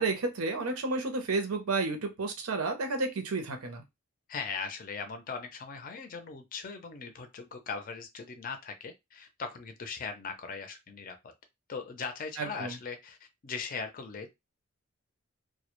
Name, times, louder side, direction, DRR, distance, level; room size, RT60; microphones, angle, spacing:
voice 1, 0.0-3.8 12.4-12.7, right 3 dB, 90° right, 0.7 m, -31 dB
voice 2, 4.3-11.3 11.7-13.2 13.4-14.3, left 5 dB, 40° left, 0.4 m, -39 dB
2.2 x 2.0 x 2.9 m
head